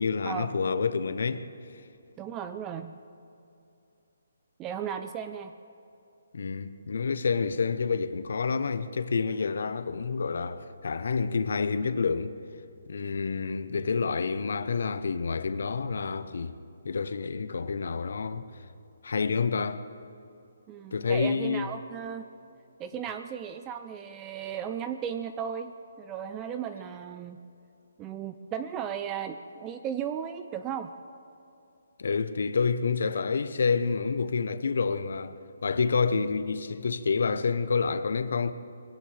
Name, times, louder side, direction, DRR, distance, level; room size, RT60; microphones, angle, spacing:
voice 1, 0.0-1.5 6.3-12.3 12.9-16.6 16.8-18.4 19.0-19.9 20.9-21.7 32.0-35.3 35.6-38.5, left 5 dB, 65° left, 0.9 m, -28 dB
voice 2, 2.2-2.9 4.6-5.5 20.7-22.3 22.8-25.7 26.0-27.4 28.0-30.9, right 8 dB, 15° right, 0.4 m, -35 dB
22.0 x 17.0 x 3.4 m
hypercardioid pair, 165°, 0 cm